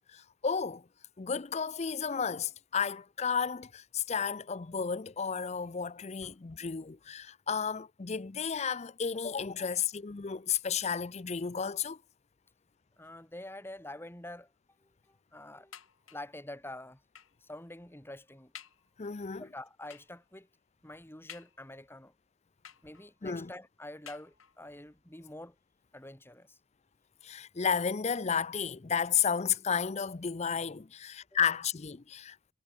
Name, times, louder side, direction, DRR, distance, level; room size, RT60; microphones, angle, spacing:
voice 1, 0.1-0.8 1.2-12.0 19.0-19.5 23.2-23.5 27.2-32.5, left 6 dB, 30° left, 0.5 m, -32 dB
voice 2, 13.0-14.5 14.8-15.8 16.1-17.0 17.4-18.5 19.4-20.5 20.8-22.1 22.8-25.6 25.9-26.6, left 1 dB, 10° left, 1.8 m, -46 dB
sound 1, 15.7-16.4 17.1-17.5 18.0-18.1 18.5-18.9 19.9-20.2 21.3-21.9 22.6-23.2 24.0-24.7 25.5-25.6 26.0-26.1, left 9 dB, 80° left, 5.7 m, -52 dB
head